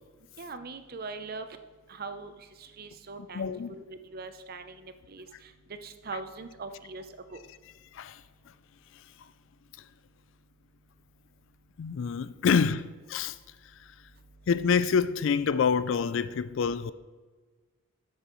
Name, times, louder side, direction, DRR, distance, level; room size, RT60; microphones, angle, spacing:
voice 1, 0.4-1.5 1.9-2.3 2.6-5.3 5.8-7.0 7.3-7.4, right 3 dB, 45° right, 0.6 m, -41 dB
voice 2, 3.3-3.8 7.9-8.2 11.8-13.4 14.5-16.9, left 6 dB, 60° left, 0.3 m, -26 dB
12.5 x 7.7 x 3.1 m
head